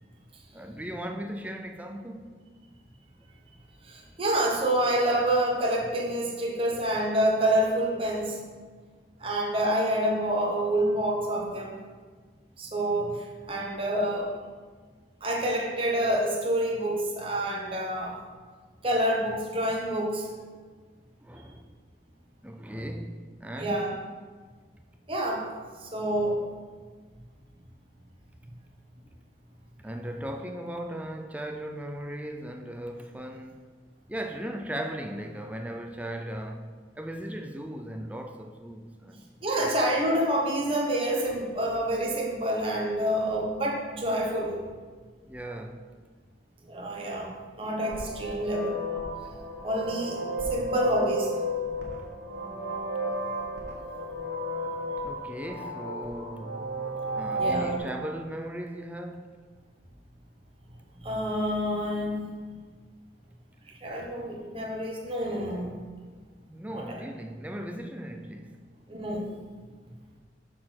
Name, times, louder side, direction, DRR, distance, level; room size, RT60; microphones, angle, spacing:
voice 1, 0.5-2.3 21.2-21.7 22.4-24.1 29.8-33.7 34.1-39.2 39.6-39.8 45.3-45.9 55.0-56.8 57.1-59.4 66.5-68.6, right 1 dB, 10° right, 0.4 m, -37 dB
voice 2, 3.8-8.4 9.2-11.7 12.6-14.3 15.2-18.1 18.8-20.3 23.6-23.9 25.1-25.5 25.8-26.4 39.4-44.6 46.6-47.3 47.6-48.8 49.6-50.2 50.5-51.3 57.4-57.8 61.0-62.4 63.8-65.8 66.7-67.0 68.9-69.3, right 1 dB, 30° right, 1.0 m, -27 dB
sound 1, 47.8-57.8, right 1 dB, 75° right, 1.6 m, -33 dB
6.4 x 4.3 x 5.9 m
head